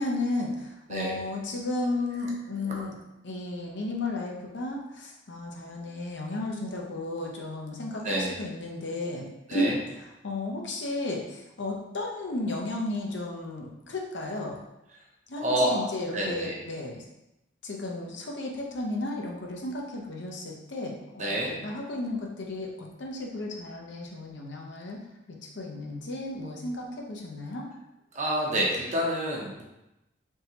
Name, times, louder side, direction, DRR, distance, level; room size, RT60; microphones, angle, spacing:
voice 1, 0.0-3.0 3.2-14.6 15.3-17.0 17.6-25.0 25.4-27.7, left 2 dB, 65° left, -1 dB, 0.7 m, -34 dB
voice 2, 8.0-8.3 9.5-9.7 15.4-15.8 16.1-16.6 21.2-21.5 28.1-29.6, right 1 dB, 40° right, -2 dB, 0.7 m, -28 dB
3.7 x 2.8 x 2.8 m, 0.91 s
head